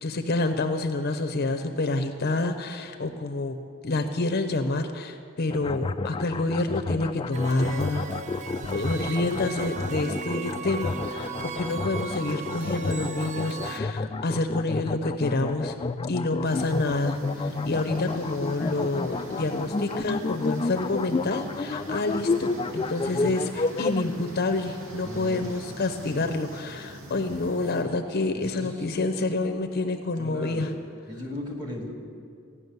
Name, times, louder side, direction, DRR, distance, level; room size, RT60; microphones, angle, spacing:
voice 1, 0.0-8.1 8.7-15.7 16.1-30.7, left 2 dB, 45° left, 7 dB, 0.6 m, -28 dB
sound 1, 5.5-24.0, left 3 dB, 25° left, 0.3 m, -30 dB
sound 2, 7.3-13.8, right 4 dB, 35° right, 0.6 m, -37 dB
sound 3, 16.4-27.8, equal, 80° right, 2.1 m, -42 dB
voice 2, 23.0-23.3 25.0-25.5 28.3-28.9 30.2-30.7 31.1-31.9, left 1 dB, 20° right, -1 dB, 2.3 m, -37 dB
15.0 x 6.0 x 9.4 m, 2.3 s
head